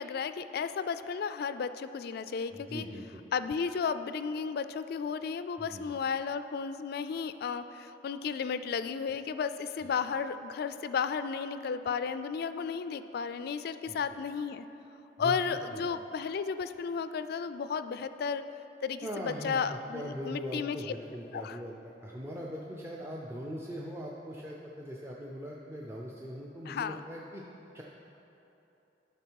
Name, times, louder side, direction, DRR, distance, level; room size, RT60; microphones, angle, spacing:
voice 1, 0.0-2.8 3.3-14.7 15.2-18.5 18.8-20.8 21.3-21.6 26.7-27.0, left 6 dB, 60° left, 12 dB, 0.3 m, -33 dB
voice 2, 2.5-3.2 5.6-5.9 9.8-9.9 13.9-14.0 15.2-15.4 15.7-15.8 19.0-27.4 27.7-27.8, equal, 15° right, -3 dB, 0.5 m, -41 dB
11.5 x 6.0 x 4.6 m, 3.0 s
head